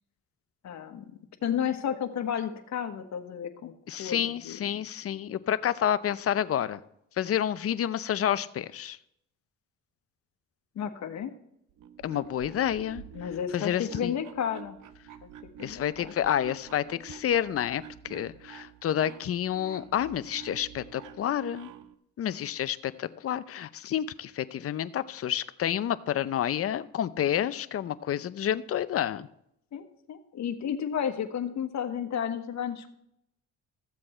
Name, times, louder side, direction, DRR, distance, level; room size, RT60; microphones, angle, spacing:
voice 1, 0.6-3.7 4.0-4.7 10.7-11.3 13.1-14.8 15.2-15.3 15.6-16.1 29.7-32.9, left 8 dB, 65° left, 7 dB, 1.3 m, -32 dB
voice 2, 3.9-6.8 7.2-9.0 12.0-13.0 13.5-14.1 15.6-21.7 22.2-29.3, left 10 dB, 50° left, 14 dB, 0.6 m, -29 dB
sound 1, 11.7-21.9, right 9 dB, 80° right, 0.8 m, -48 dB
14.0 x 7.7 x 4.4 m, 0.75 s
cardioid pair, 90°, 30 cm